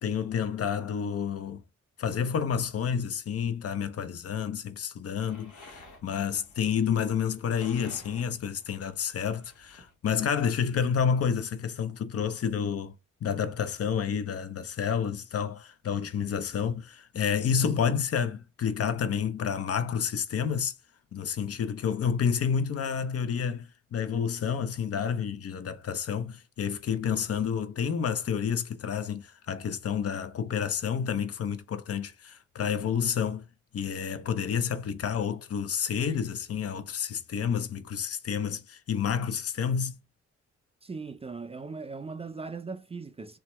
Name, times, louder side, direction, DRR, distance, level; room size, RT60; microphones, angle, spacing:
voice 1, 0.0-1.6 2.0-12.9 13.2-20.7 21.1-33.5 33.7-40.0, left 7 dB, 50° left, 0.6 m, -29 dB
sound 1, 5.1-9.9, left 2 dB, 70° left, 1.0 m, -53 dB
voice 2, 40.8-43.4, right 4 dB, 20° right, 0.3 m, -39 dB
2.8 x 2.2 x 3.0 m
supercardioid pair, 50°, 31 cm